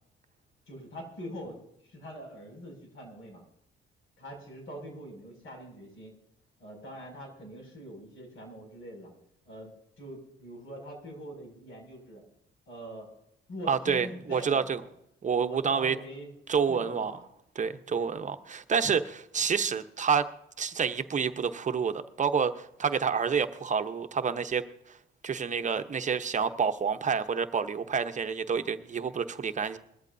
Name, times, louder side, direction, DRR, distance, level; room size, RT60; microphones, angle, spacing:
voice 1, 0.7-3.4 4.2-6.1 6.6-9.1 9.4-12.2 12.7-13.1 13.5-14.9 15.3-16.3 16.7-17.2 17.9-18.1, equal, 80° left, 2 dB, 6.2 m, -44 dB
voice 2, 13.7-14.8 15.2-16.0 16.5-17.1 17.6-20.3 20.6-24.6 25.2-29.8, right 6 dB, 40° right, 8 dB, 0.9 m, -28 dB
21.0 x 14.0 x 2.7 m, 0.79 s
cardioid pair, 90°, 20 cm